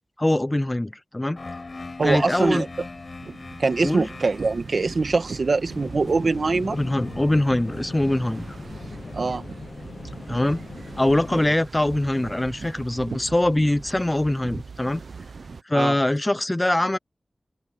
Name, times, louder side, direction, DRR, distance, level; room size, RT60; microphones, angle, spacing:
voice 1, 0.2-1.4 2.0-2.7 3.8-4.1 6.7-8.6 10.3-10.6 11.0-15.0 15.7-17.0, left 1 dB, 20° left, 0.5 m, -23 dB
sound 1, 1.4-9.2, left 3 dB, 50° left, 7.1 m, -42 dB
voice 2, 2.0-2.7 3.6-6.8 9.1-9.4 15.7-16.0, right 3 dB, 70° right, 1.7 m, -23 dB
sound 2, 2.5-15.6, right 4 dB, 85° right, 0.9 m, -39 dB
sound 3, 5.7-11.6, left 4 dB, 70° left, 0.8 m, -39 dB
wide cardioid pair, 75°, 0 cm